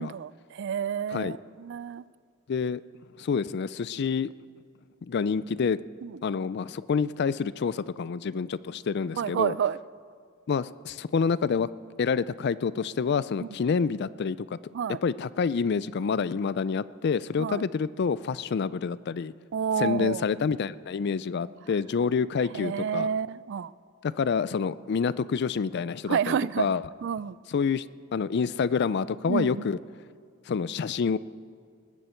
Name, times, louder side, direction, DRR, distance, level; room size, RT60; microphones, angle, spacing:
voice 1, 0.0-2.1 6.0-6.2 9.2-9.8 13.4-13.5 14.7-15.0 17.4-17.6 19.5-20.2 22.5-23.7 26.1-26.7 27.0-27.4 29.3-29.8, right 7 dB, 55° right, 19 dB, 0.3 m, -29 dB
voice 2, 2.5-2.8 3.2-4.3 5.1-5.8 6.2-9.6 10.5-11.7 12.0-14.4 15.0-19.3 19.8-23.1 24.0-26.8 27.5-27.8 28.1-29.8 30.5-31.2, left 5 dB, 50° left, 18 dB, 0.4 m, -27 dB
19.5 x 14.5 x 4.4 m, 2.2 s
head